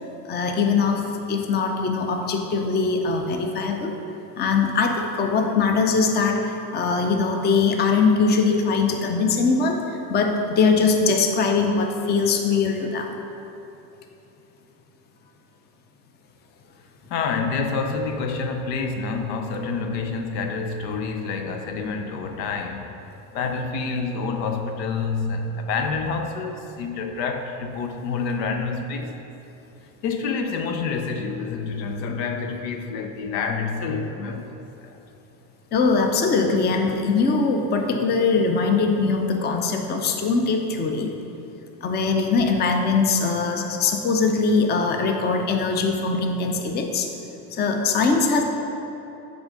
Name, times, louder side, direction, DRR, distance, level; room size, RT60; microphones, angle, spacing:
voice 1, 0.3-3.9 4.4-13.2 35.7-41.2 41.8-47.1 47.5-48.4, left 4 dB, 20° left, 4 dB, 0.5 m, -22 dB
voice 2, 17.1-23.0 23.3-29.2 30.0-34.6 34.8-35.0, left 4 dB, 85° left, 5 dB, 0.7 m, -28 dB
8.6 x 3.7 x 3.8 m, 3.0 s
supercardioid pair, 95°, 49 cm